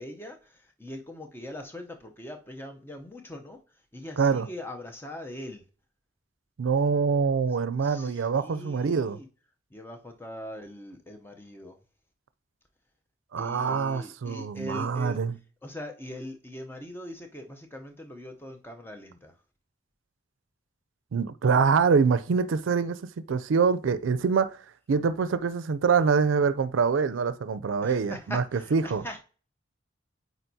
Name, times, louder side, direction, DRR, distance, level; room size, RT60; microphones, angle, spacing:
voice 1, 0.0-5.6 7.8-9.3 9.7-11.8 13.4-15.2 15.6-19.3 27.8-29.2, left 1 dB, 10° left, 0.6 m, -41 dB
voice 2, 4.2-4.5 6.6-9.2 13.3-15.3 21.1-24.6 24.9-28.4 28.7-29.0, right 5 dB, 85° right, 0.4 m, -25 dB
8.9 x 4.0 x 2.7 m
head